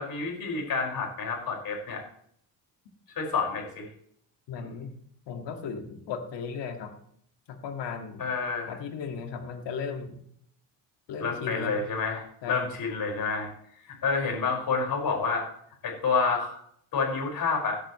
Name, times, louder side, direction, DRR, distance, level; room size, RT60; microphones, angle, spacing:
voice 1, 0.0-2.0 3.2-3.9 4.6-4.7 8.2-8.7 11.2-13.5 13.9-15.5 15.8-16.6 16.9-17.8, left 4 dB, 55° left, -1 dB, 5.3 m, -29 dB
voice 2, 4.5-4.9 5.3-6.9 7.5-8.3 8.7-10.2 11.1-11.8 12.4-12.7, left 6 dB, 80° left, 5 dB, 2.0 m, -36 dB
16.5 x 10.0 x 3.1 m, 0.66 s
cardioid pair, 105°, 42 cm